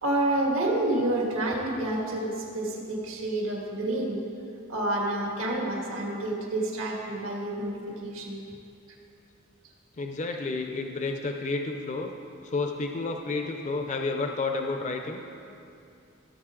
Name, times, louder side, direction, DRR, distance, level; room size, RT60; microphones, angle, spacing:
voice 1, 0.0-4.2 4.7-8.4, right 1 dB, 90° right, -1 dB, 1.8 m, -29 dB
voice 2, 10.0-12.1 12.4-15.2, left 3 dB, 35° left, 4 dB, 0.5 m, -30 dB
15.5 x 7.0 x 3.7 m, 2.6 s
head